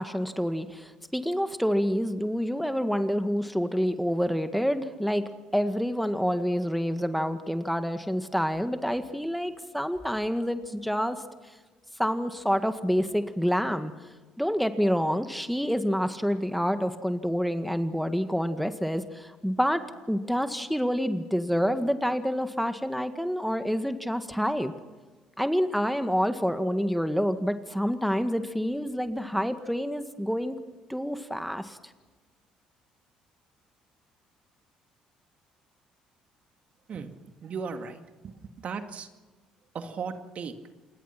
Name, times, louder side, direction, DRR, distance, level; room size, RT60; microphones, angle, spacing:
voice 1, 0.0-11.2 12.0-13.9 14.4-24.7 25.4-30.6 30.9-31.8, equal, ahead, 9 dB, 1.7 m, -28 dB
voice 2, 37.4-39.1 39.7-40.5, right 5 dB, 50° right, 7 dB, 2.2 m, -36 dB
28.5 x 20.5 x 6.0 m, 1.3 s
supercardioid pair, 65°, 3 cm